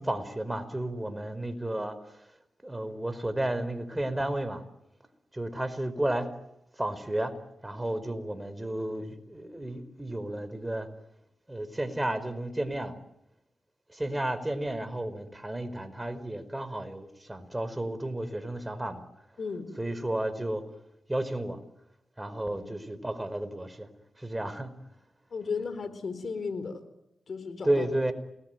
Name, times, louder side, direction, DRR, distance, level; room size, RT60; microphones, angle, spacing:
voice 1, 0.0-2.0 2.6-4.6 5.3-6.3 6.8-7.3 7.6-10.9 11.5-12.9 13.9-19.0 19.8-20.6 21.1-21.6 22.2-23.9 24.2-24.7 27.6-28.1, right 1 dB, 15° right, 11 dB, 5.0 m, -32 dB
voice 2, 19.4-19.7 22.5-22.6 25.3-26.8 27.3-27.9, left 5 dB, 60° left, 12 dB, 4.6 m, -35 dB
29.0 x 20.5 x 9.4 m, 0.85 s
supercardioid pair, 45°, 0 cm